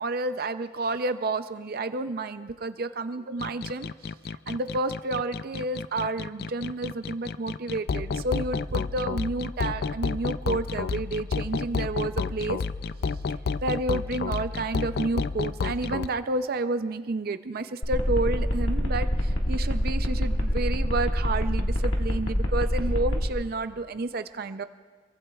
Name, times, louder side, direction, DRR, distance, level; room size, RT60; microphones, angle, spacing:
voice 1, 0.0-3.9 4.5-12.6 13.6-24.6, right 2 dB, 55° right, 10 dB, 0.5 m, -30 dB
sound 1, 3.4-16.1, left 4 dB, 60° left, 0.4 m, -30 dB
sound 2, 17.8-23.3, equal, 90° left, 1.8 m, -26 dB
27.0 x 22.5 x 2.4 m, 1.5 s
head